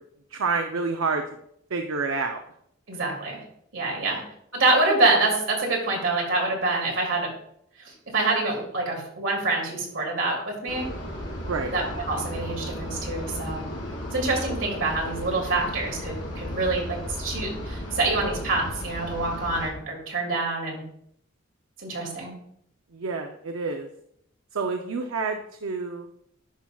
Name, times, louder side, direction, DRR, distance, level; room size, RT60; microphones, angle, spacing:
voice 1, 0.3-1.2 1.7-2.4 4.0-4.2 11.4-11.7 22.9-23.9 24.5-26.1, right 4 dB, 85° right, 4 dB, 0.6 m, -28 dB
voice 2, 2.9-3.4 3.7-4.2 4.5-7.3 7.8-10.9 11.7-13.6 14.1-20.8 21.8-22.4, right 2 dB, 70° right, -1 dB, 2.5 m, -26 dB
sound 1, 10.7-19.7, equal, 75° left, 2.5 m, -34 dB
10.0 x 5.8 x 2.3 m, 0.72 s
head